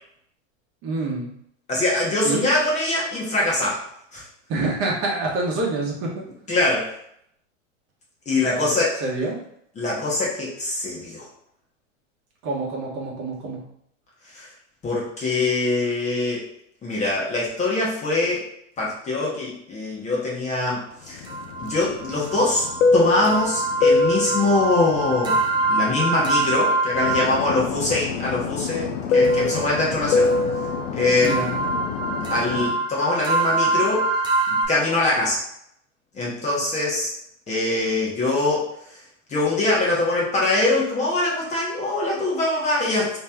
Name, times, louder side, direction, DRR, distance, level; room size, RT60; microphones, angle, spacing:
voice 1, 0.8-1.3 2.2-2.4 4.5-6.2 8.4-9.4 12.4-13.6 31.2-31.6, right 3 dB, 35° right, -2 dB, 1.1 m, -27 dB
voice 2, 1.7-3.8 4.1-4.2 6.5-6.9 8.3-8.9 9.8-11.3 14.3-14.5 14.8-16.4 16.8-18.4 18.8-21.2 21.6-22.6 22.9-25.4 25.7-30.3 30.9-31.4 32.1-34.1 34.7-35.4 36.1-37.1 37.5-38.6 39.3-43.2, left 2 dB, 20° left, -5 dB, 0.9 m, -23 dB
Fixed-wing aircraft airplane, 21.2-26.6 26.9-32.8, left 3 dB, 80° left, 0.5 m, -24 dB
sound 1, 21.2-27.7 29.2-34.7, right 3 dB, 10° right, 0.4 m, -25 dB
3.2 x 2.9 x 3.4 m, 0.72 s
hypercardioid pair, 130°, 38 cm